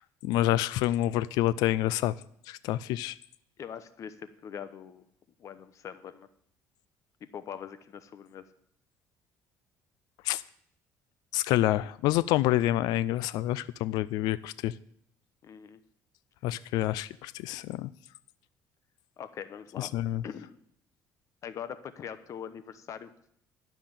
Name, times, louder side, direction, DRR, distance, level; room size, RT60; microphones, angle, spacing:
voice 1, 0.2-2.1 2.5-3.2 10.3-10.4 11.3-14.7 16.4-17.9 19.8-20.2, left 14 dB, 85° left, 17 dB, 0.4 m, -27 dB
voice 2, 3.6-5.0 5.4-6.3 7.3-8.4 15.4-15.8 19.2-19.9 20.2-20.5 21.4-23.1, left 8 dB, 50° left, 12 dB, 0.9 m, -42 dB
12.0 x 5.8 x 8.8 m, 0.67 s
cardioid pair, 110°, 7 cm